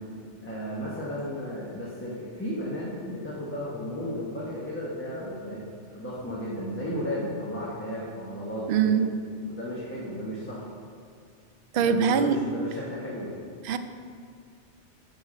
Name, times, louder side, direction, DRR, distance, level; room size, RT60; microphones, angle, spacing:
voice 1, 0.4-5.6 5.9-9.0 9.5-10.7 11.8-13.4, equal, 10° left, -7 dB, 1.1 m, -34 dB
voice 2, 8.7-9.0 11.7-12.4 13.6-13.8, right 7 dB, 60° right, 9 dB, 0.6 m, -22 dB
7.7 x 5.0 x 6.3 m, 2.2 s
omnidirectional pair, 1.2 m